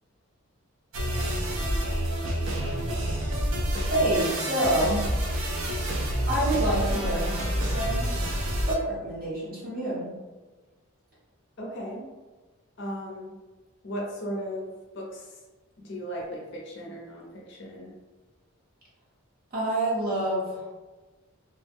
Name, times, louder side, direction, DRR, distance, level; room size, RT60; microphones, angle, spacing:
sound 1, 0.9-8.8, equal, 70° right, 0.5 m, -28 dB
voice 1, 3.9-5.0 6.3-8.1 8.7-10.1 19.5-20.6, right 1 dB, 45° right, -8 dB, 1.1 m, -27 dB
voice 2, 11.6-12.1 12.8-13.4 13.8-15.4 15.8-18.0, equal, 55° left, -2 dB, 0.5 m, -36 dB
2.2 x 2.1 x 3.4 m, 1.3 s
head